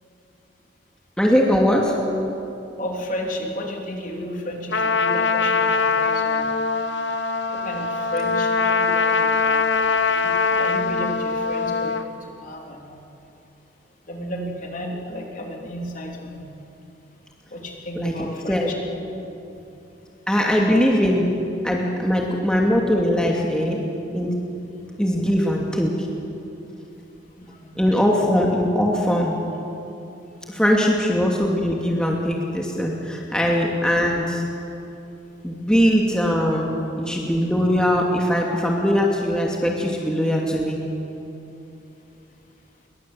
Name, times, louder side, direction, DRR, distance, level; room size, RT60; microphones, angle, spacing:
voice 1, 1.2-2.0 17.9-18.7 20.3-21.4 21.6-23.8 24.1-24.4 25.0-26.1 27.8-29.4 30.5-34.4 35.4-36.7 37.0-40.8, equal, 5° left, -2 dB, 2.4 m, -21 dB
voice 2, 2.8-6.5 7.5-13.0 14.1-16.5 17.5-18.7 19.5-19.6 27.4-27.8, equal, 45° left, 0 dB, 3.6 m, -33 dB
Trumpet, 4.7-12.0, left 4 dB, 65° left, 1.3 m, -22 dB
28.5 x 23.0 x 7.7 m, 2.8 s
head